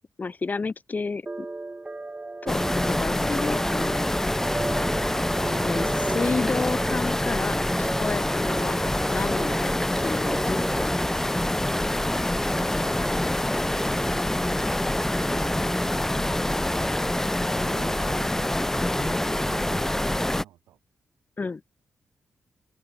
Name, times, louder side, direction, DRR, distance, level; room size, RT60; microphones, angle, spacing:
voice 1, 0.2-1.5 2.4-2.6 2.9-4.5 5.6-8.8 9.1-9.7 10.0-10.6 21.4-21.6, left 4 dB, 40° left, 1.2 m, -31 dB
sound 1, 1.3-10.9, right 2 dB, 25° right, 0.7 m, -35 dB
sound 2, 2.5-20.4, left 1 dB, 10° left, 0.5 m, -26 dB
voice 2, 17.5-20.8, right 13 dB, 90° right, 6.6 m, -48 dB
supercardioid pair, 45°, 4 cm